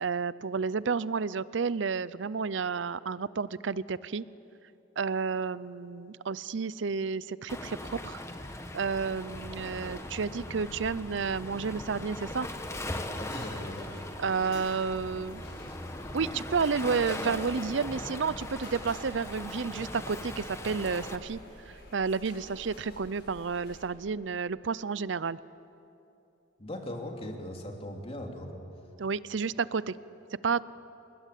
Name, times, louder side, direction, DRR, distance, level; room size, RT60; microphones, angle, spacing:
voice 1, 0.0-4.2 5.0-8.2 8.7-12.5 14.2-15.6 16.1-21.4 21.9-25.4 29.0-30.0 30.4-30.6, right 5 dB, 65° right, 18 dB, 0.6 m, -31 dB
Waves surf, 7.5-21.2, left 1 dB, 15° left, 1.4 m, -40 dB
sound 1, 9.1-23.9, left 1 dB, 65° left, 7.1 m, -50 dB
voice 2, 13.2-13.9 26.6-28.5, left 1 dB, 30° left, 1 dB, 3.0 m, -39 dB
29.0 x 20.0 x 8.4 m, 2.8 s
head